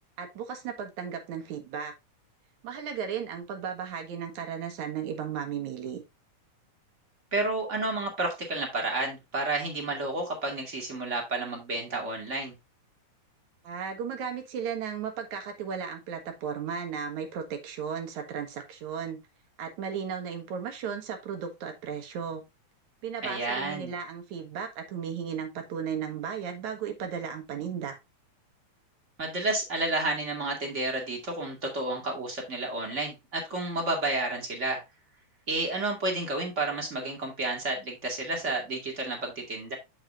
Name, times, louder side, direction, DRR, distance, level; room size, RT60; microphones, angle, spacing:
voice 1, 0.2-1.9 2.6-6.0 13.6-19.2 19.6-22.4 23.0-28.0, right 7 dB, 75° right, 2.8 m, -35 dB
voice 2, 7.3-12.5 23.2-23.9 29.2-34.8 35.5-39.8, right 2 dB, 25° right, 2.2 m, -31 dB
7.7 x 7.3 x 2.5 m
omnidirectional pair, 3.4 m